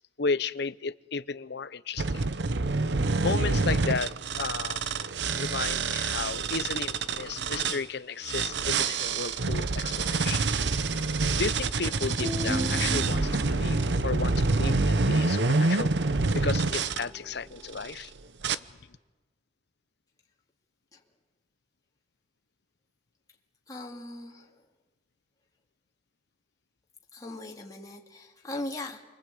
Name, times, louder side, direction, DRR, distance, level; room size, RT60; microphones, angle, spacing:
voice 1, 0.2-2.2 3.2-4.8 5.3-10.5 11.4-16.0 16.3-18.1, left 4 dB, 65° left, 0.8 m, -33 dB
sound 1, 2.0-7.8 8.3-17.0 17.7-18.0 18.4-18.6, right 3 dB, 65° right, 0.8 m, -27 dB
sound 2, 12.2-17.6, left 1 dB, 5° right, 2.5 m, -39 dB
voice 2, 23.7-24.6 27.1-29.0, left 2 dB, 20° left, 2.6 m, -39 dB
29.0 x 23.5 x 8.5 m
head